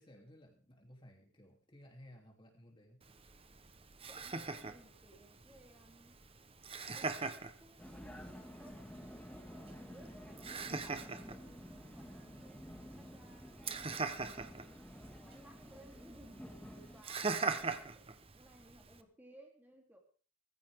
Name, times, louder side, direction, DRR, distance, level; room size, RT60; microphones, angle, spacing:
voice 1, 0.0-3.0, equal, 25° left, 1 dB, 3.1 m, -58 dB
Laughter, 3.0-19.0, right 4 dB, 30° right, 1.1 m, -43 dB
voice 2, 4.1-6.2 6.9-12.6 13.0-14.8 15.2-18.1 18.3-20.0, right 1 dB, 10° right, 1 dB, 3.3 m, -61 dB
Vehicle, 7.8-17.0, equal, 5° left, 2.1 m, -52 dB
19.0 x 15.5 x 3.7 m, 0.40 s
head